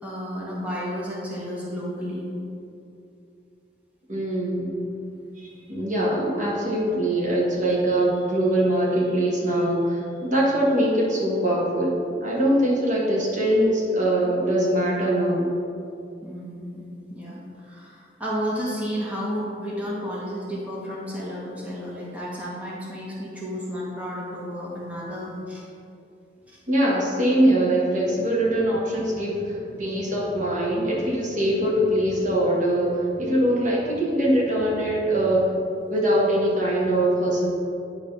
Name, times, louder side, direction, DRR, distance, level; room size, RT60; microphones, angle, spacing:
voice 1, 0.0-2.2 16.2-25.6 26.5-26.6, equal, 10° right, -6 dB, 1.1 m, -32 dB
voice 2, 4.1-4.8 5.4-15.5 26.7-35.5 35.9-37.5, right 1 dB, 45° right, -4 dB, 1.5 m, -22 dB
9.7 x 3.3 x 5.4 m, 2.6 s
head